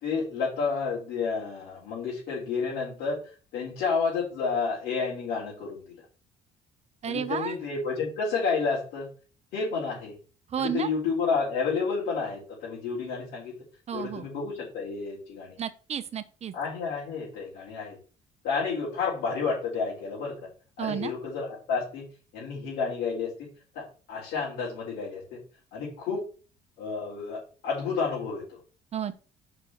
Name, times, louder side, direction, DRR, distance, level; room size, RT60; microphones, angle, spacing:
voice 1, 0.0-3.2 3.5-6.0 7.0-9.1 9.5-10.2 10.6-13.5 13.9-15.6 16.5-18.0 18.4-20.3 20.8-22.1 22.3-25.4 25.7-26.2 26.8-28.6, left 5 dB, 80° left, -6 dB, 4.2 m, -30 dB
voice 2, 7.0-7.6 10.5-10.9 13.9-14.3 15.6-16.5 20.8-21.1 28.9-29.1, right 8 dB, 40° right, 11 dB, 0.8 m, -31 dB
5.9 x 4.8 x 6.3 m, 0.38 s
cardioid pair, 110°, 17 cm